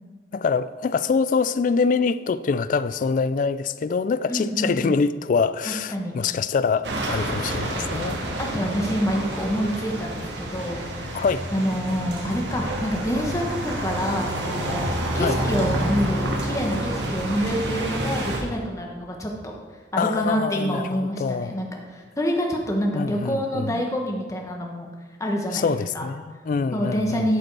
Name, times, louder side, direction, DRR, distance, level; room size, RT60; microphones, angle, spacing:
voice 1, 0.3-8.2 11.1-11.5 15.2-15.4 20.0-21.6 22.9-23.8 25.5-27.3, left 5 dB, 50° left, 0.3 m, -25 dB
voice 2, 4.3-5.0 5.6-6.2 8.4-11.1 11.5-14.9 15.1-19.5 19.9-24.9 25.2-25.7 25.9-26.1 26.7-27.4, equal, 20° left, 1.1 m, -27 dB
sound 1, 6.8-18.4, right 1 dB, 90° right, 1.4 m, -28 dB
11.5 x 5.1 x 4.7 m
head